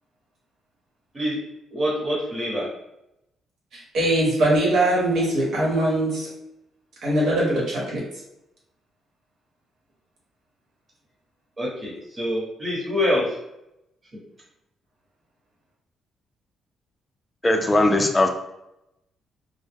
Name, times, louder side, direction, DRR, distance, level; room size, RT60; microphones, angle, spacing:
voice 1, 1.7-2.7 11.6-13.4 14.1-14.2, equal, 30° right, -5 dB, 1.1 m, -26 dB
voice 2, 3.7-6.3 7.0-8.0, right 1 dB, 70° right, -4 dB, 1.0 m, -21 dB
voice 3, 17.4-18.3, left 2 dB, 20° left, 3 dB, 0.4 m, -19 dB
2.2 x 2.0 x 3.3 m, 0.86 s
cardioid pair, 90°, 0 cm